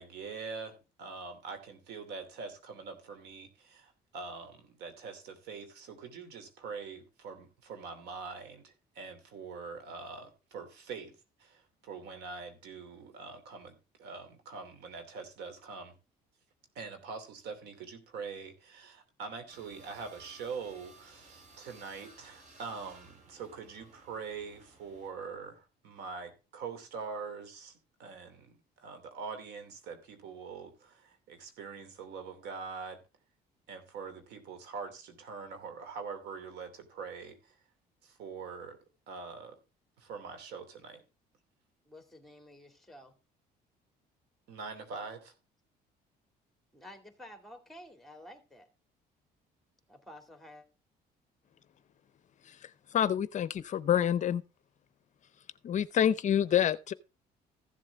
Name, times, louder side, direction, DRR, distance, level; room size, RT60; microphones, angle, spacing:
voice 1, 0.0-15.9 16.7-33.0 33.7-37.5 38.0-38.8 39.1-39.6 40.0-41.0 44.5-45.3, right 5 dB, 85° right, 2.8 m, -44 dB
sound 1, 19.5-25.1, right 3 dB, 45° right, 3.0 m, -57 dB
voice 2, 41.9-43.1 46.7-48.7 49.9-50.6, left 1 dB, ahead, 2.3 m, -51 dB
voice 3, 52.5-54.4 55.6-56.9, left 9 dB, 45° left, 0.6 m, -28 dB
15.0 x 7.5 x 3.4 m
cardioid pair, 110°, 17 cm